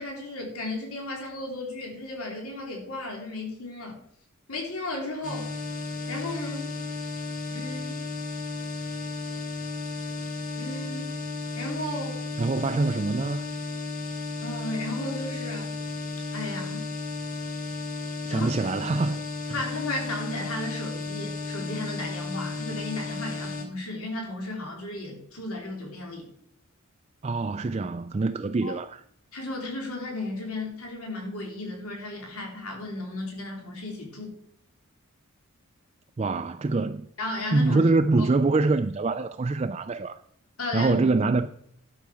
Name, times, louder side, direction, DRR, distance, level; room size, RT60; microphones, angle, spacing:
voice 1, 0.0-4.0 4.5-5.5 6.1-6.7 7.5-8.0 10.6-11.1 11.5-12.2 14.4-15.7 16.3-16.9 18.3-18.7 19.0-19.1 19.5-26.3 28.6-28.8 29.3-34.3 37.2-37.9 38.2-38.3 40.6-40.9 41.2-41.3, left 2 dB, 90° left, 3.4 m, -34 dB
sound 1, 5.2-23.6, left 3 dB, 35° left, 1.7 m, -34 dB
voice 2, 12.4-13.4 18.3-19.2 27.2-29.0 36.2-37.1 37.5-40.2 40.7-41.5, right 3 dB, 30° right, 0.3 m, -24 dB
12.0 x 5.8 x 6.2 m
head